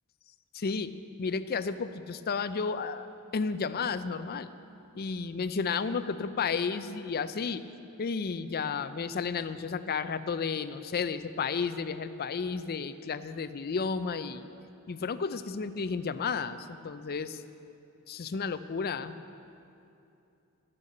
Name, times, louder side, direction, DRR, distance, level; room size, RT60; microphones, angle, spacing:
voice 1, 0.5-0.9 1.2-4.5 4.9-7.6 8.0-14.5 14.9-17.4 18.1-19.2, left 5 dB, 45° left, 12 dB, 0.5 m, -32 dB
12.0 x 6.8 x 8.6 m, 2.7 s
head